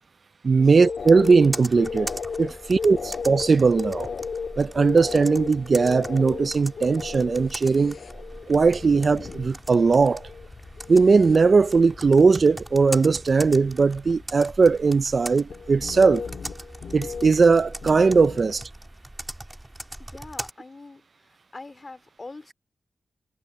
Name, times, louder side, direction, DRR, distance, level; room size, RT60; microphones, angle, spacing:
voice 1, 0.4-2.1 2.4-4.1 4.6-8.0 8.5-10.2 10.9-16.2 16.9-18.6, right 4 dB, 45° right, 0.4 m, -19 dB
sound 1, 0.6-9.5 9.8-10.5 10.8-11.5 11.8-12.2 15.5-18.7, left 5 dB, 75° left, 1.7 m, -35 dB
Computer keyboard, 1.0-20.5, right 1 dB, 10° right, 2.3 m, -40 dB
sound 2, 7.4-14.9, left 5 dB, 55° left, 6.3 m, -49 dB
voice 2, 20.0-22.5, left 3 dB, 30° left, 2.4 m, -44 dB
wide cardioid pair, 155°, 0 cm